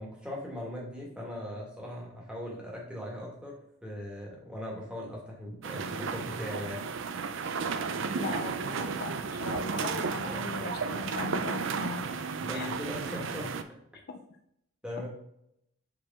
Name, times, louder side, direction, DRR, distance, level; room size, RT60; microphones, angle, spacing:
voice 1, 0.0-3.5 3.8-6.9 10.2-10.7 12.4-13.6 14.8-15.1, left 1 dB, 5° right, -4 dB, 1.6 m, -39 dB
sound 1, 5.6-13.6, right 5 dB, 60° right, 0.4 m, -33 dB
voice 2, 8.2-12.0 12.5-12.7 14.1-14.2, left 3 dB, 45° left, 5 dB, 0.4 m, -38 dB
6.3 x 4.7 x 3.6 m, 0.75 s
head